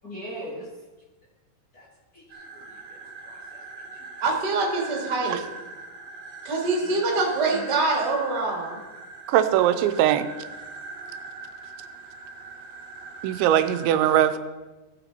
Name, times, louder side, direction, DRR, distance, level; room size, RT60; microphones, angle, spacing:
voice 1, 0.0-0.7 1.7-1.9 2.1-3.0 3.2-3.6 4.0-4.1 6.8-6.9 7.5-7.6, equal, 45° left, -7 dB, 1.1 m, -40 dB
sound 1, 2.3-13.9, right 3 dB, 55° right, 1.9 m, -41 dB
voice 2, 4.2-5.4 6.4-8.8, right 3 dB, 35° right, -2 dB, 1.9 m, -25 dB
voice 3, 9.3-10.3 13.2-14.4, right 11 dB, 85° right, 11 dB, 2.9 m, -20 dB
15.5 x 7.1 x 4.2 m, 1.2 s
omnidirectional pair, 5.2 m